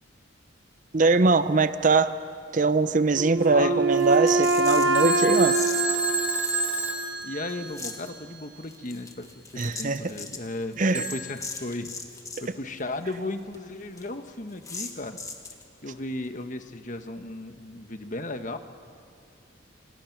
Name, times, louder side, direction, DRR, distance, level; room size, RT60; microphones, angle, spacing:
voice 1, 0.9-2.1 2.5-5.6 9.6-10.2 10.8-11.1, right 3 dB, 40° right, 13 dB, 0.6 m, -22 dB
Wind instrument woodwind instrument, 3.1-7.1, right 3 dB, 65° right, 1.5 m, -24 dB
voice 2, 3.5-3.9 7.2-11.9 12.4-15.2 15.8-18.6, left 2 dB, 40° left, 8 dB, 1.2 m, -35 dB
sound 1, 3.9-5.0 5.5-5.8 6.4-7.2 7.5-8.1 8.7-12.5 12.8-12.9 13.1-13.2 13.5-13.6 14.0-14.1 14.6-15.6, left 4 dB, 15° left, 1.7 m, -38 dB
Telephone, 4.9-8.0 10.9-11.4, right 2 dB, 5° right, 2.7 m, -29 dB
28.0 x 27.5 x 6.0 m, 2.4 s
head